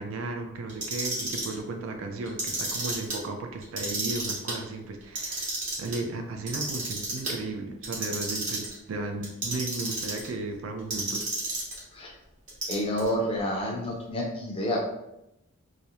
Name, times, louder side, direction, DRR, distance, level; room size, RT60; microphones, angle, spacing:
voice 1, 0.0-5.5 5.8-11.3, right 2 dB, 65° right, 4 dB, 0.4 m, -35 dB
Clock, 0.7-1.5 2.2-3.2 3.6-4.5 5.0-6.0 6.5-7.3 7.8-8.7 9.2-10.3 10.9-11.8 12.5-13.1, right 2 dB, 35° right, 0.8 m, -31 dB
voice 2, 12.7-14.8, equal, 25° left, -1 dB, 0.4 m, -29 dB
2.4 x 2.0 x 2.8 m, 0.87 s
head